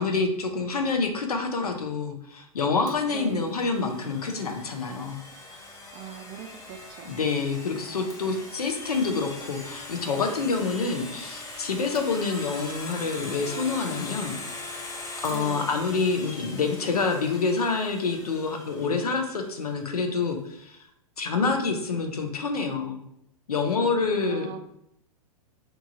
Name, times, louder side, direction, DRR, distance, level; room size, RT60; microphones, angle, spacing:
voice 1, 0.0-5.2 7.0-14.4 15.2-20.8 21.2-23.0 23.5-24.5, left 4 dB, 85° left, 4 dB, 0.6 m, -27 dB
Domestic sounds home sounds, 2.9-19.6, left 2 dB, 20° left, 0.6 m, -41 dB
voice 2, 3.1-3.5 5.9-7.2 15.3-15.7 24.2-24.6, right 8 dB, 35° right, 6 dB, 0.4 m, -40 dB
2.9 x 2.3 x 2.7 m, 0.75 s
hypercardioid pair, 110°, 19 cm